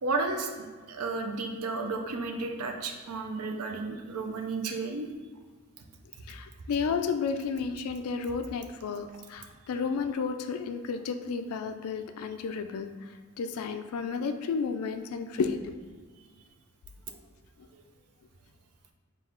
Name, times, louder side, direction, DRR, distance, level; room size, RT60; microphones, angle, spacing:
voice 1, 0.0-5.1 17.7-17.8, right 3 dB, 90° right, 4 dB, 0.5 m, -33 dB
voice 2, 6.3-12.9 13.4-15.6, left 5 dB, 80° left, 8 dB, 0.3 m, -32 dB
3.9 x 2.4 x 4.4 m, 1.5 s
head